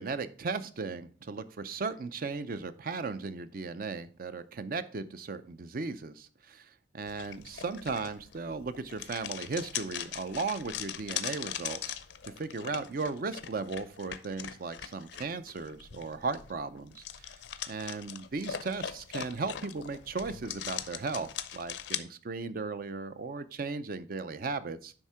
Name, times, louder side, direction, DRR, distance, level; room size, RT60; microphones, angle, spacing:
voice 1, 0.0-12.0 12.2-17.4 17.7-24.9, right 4 dB, 50° right, 13 dB, 0.5 m, -36 dB
sound 1, 7.1-22.0, left 9 dB, 70° left, 0.5 m, -40 dB
9.9 x 3.7 x 4.7 m, 0.40 s
head